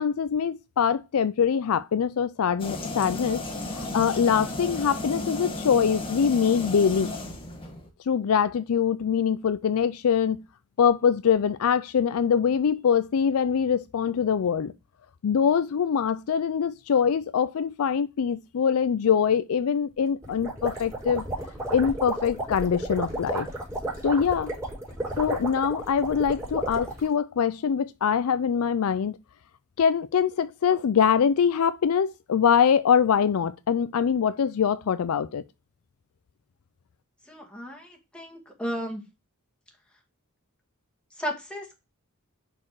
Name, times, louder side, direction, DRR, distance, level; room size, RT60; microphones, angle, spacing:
voice 1, 0.0-3.4 3.7-7.1 8.1-10.4 10.8-14.7 15.2-21.2 21.7-23.5 24.0-24.5 25.2-29.2 29.8-35.4, left 7 dB, 70° left, 0.4 m, -23 dB
sound 1, 2.6-7.9, left 2 dB, 25° left, 1.4 m, -34 dB
sound 2, 20.2-27.1, right 1 dB, 15° right, 3.7 m, -33 dB
voice 2, 37.3-39.0 41.2-41.8, equal, 5° left, 1.8 m, -34 dB
5.9 x 4.4 x 4.7 m
head